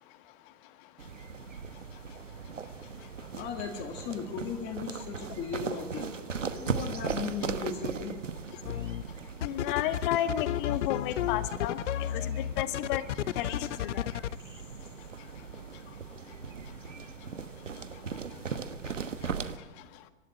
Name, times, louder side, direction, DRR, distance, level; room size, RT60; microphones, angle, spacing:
sound 1, 1.0-19.6, right 6 dB, 90° right, 1.2 m, -39 dB
voice 1, 3.4-6.1 6.4-8.2 12.1-12.2 13.5-13.6 13.8-14.1 15.9-16.0, left 5 dB, 30° left, 3 dB, 2.0 m, -37 dB
sound 2, 8.6-9.0 9.4-14.4, left 11 dB, 75° left, 0.6 m, -32 dB
voice 2, 9.4-11.8 12.2-13.0 13.3-14.1, left 12 dB, 45° left, 11 dB, 1.4 m, -32 dB
24.5 x 11.5 x 9.7 m, 1.3 s
hypercardioid pair, 110°, 37 cm